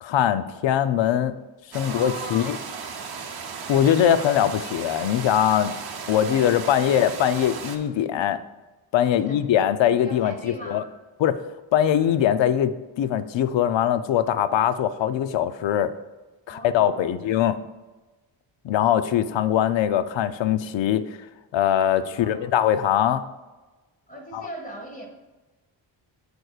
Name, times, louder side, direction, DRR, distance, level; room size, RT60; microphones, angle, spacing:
voice 1, 0.0-1.3 1.7-2.6 3.7-5.8 6.1-8.4 8.9-10.8 11.2-11.4 11.7-15.9 16.5-17.6 18.6-21.1 21.5-23.2 24.3-24.4, left 10 dB, 65° left, 12 dB, 0.6 m, -22 dB
sound 1, 1.7-7.8, right 5 dB, 50° right, 0.8 m, -35 dB
voice 2, 1.8-2.6 6.2-7.1 9.1-9.5 10.0-10.9 16.5-17.2 22.1-22.7 24.1-25.1, right 1 dB, 15° left, 0 dB, 1.7 m, -40 dB
14.0 x 4.8 x 2.4 m, 1.2 s
cardioid pair, 100°, 47 cm